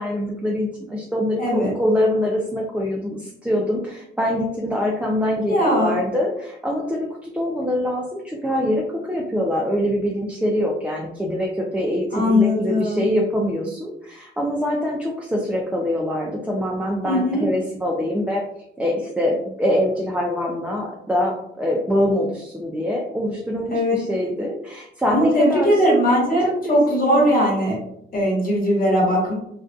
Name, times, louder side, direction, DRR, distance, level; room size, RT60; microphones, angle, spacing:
voice 1, 0.0-18.4 18.8-25.8 26.4-27.4, left 1 dB, 5° right, -2 dB, 0.4 m, -24 dB
voice 2, 1.4-1.7 5.5-6.0 12.1-13.0 17.0-17.4 23.7-24.0 25.1-27.8 28.1-29.3, equal, 45° left, -4 dB, 1.2 m, -19 dB
2.5 x 2.3 x 2.3 m, 0.77 s
cardioid pair, 90°, 20 cm